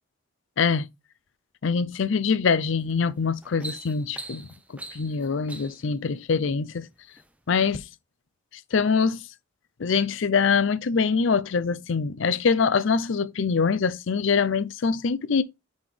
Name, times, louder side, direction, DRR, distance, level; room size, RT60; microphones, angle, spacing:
voice 1, 0.6-0.9 1.6-4.5 4.9-6.9 7.5-7.8 8.7-9.3 9.8-15.4, left 5 dB, 60° left, 0.5 m, -24 dB
sound 1, 2.7-2.9 3.3-5.9 6.7-7.3 7.7-7.8, right 2 dB, 5° right, 0.6 m, -41 dB
9.3 x 4.2 x 3.3 m
head